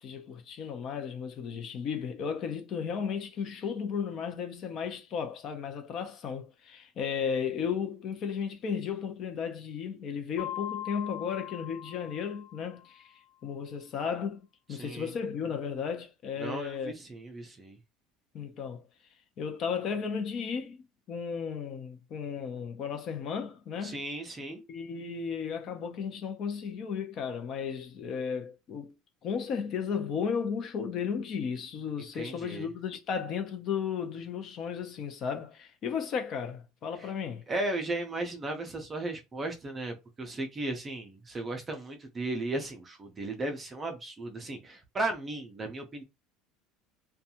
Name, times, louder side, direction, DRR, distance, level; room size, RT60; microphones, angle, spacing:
voice 1, 0.0-13.1 13.4-16.9 18.3-18.8 19.4-20.8 21.1-24.0 24.7-28.9 29.2-37.4, left 6 dB, 35° left, 0.6 m, -34 dB
Mallet percussion, 10.4-13.0, left 12 dB, 55° left, 1.2 m, -41 dB
voice 2, 14.7-15.1 16.4-17.8 23.8-24.6 32.2-32.7 37.0-37.1 37.5-46.0, right 2 dB, 20° right, 0.5 m, -36 dB
2.6 x 2.3 x 2.8 m
cardioid pair, 165°, 0 cm